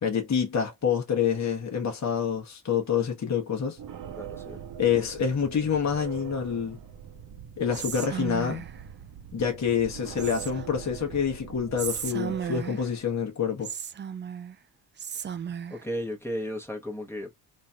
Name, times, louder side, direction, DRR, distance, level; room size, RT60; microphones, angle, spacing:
voice 1, 0.0-3.8 4.8-6.8 7.6-8.6 9.3-13.7, left 7 dB, 35° left, 1.0 m, -27 dB
sound 1, 3.8-13.3, right 9 dB, 45° right, 0.8 m, -43 dB
voice 2, 4.2-4.6 15.7-17.4, equal, 5° left, 1.0 m, -34 dB
Whispering, 7.7-8.8 10.2-10.9 11.8-13.0 13.6-14.6 15.0-15.8, right 7 dB, 25° right, 0.3 m, -35 dB
3.1 x 2.6 x 2.2 m
supercardioid pair, 55°, 46 cm